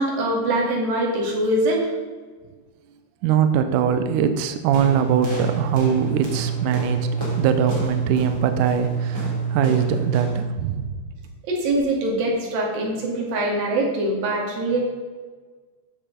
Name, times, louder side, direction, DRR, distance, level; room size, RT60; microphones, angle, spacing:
voice 1, 0.0-1.9 11.5-14.8, right 1 dB, 65° right, -1 dB, 3.9 m, -23 dB
voice 2, 3.2-7.1 7.4-10.8, right 8 dB, 80° right, 8 dB, 1.8 m, -22 dB
sound 1, 4.7-10.5, right 5 dB, 5° right, 3.4 m, -26 dB
14.5 x 6.7 x 5.2 m, 1.4 s
omnidirectional pair, 4.7 m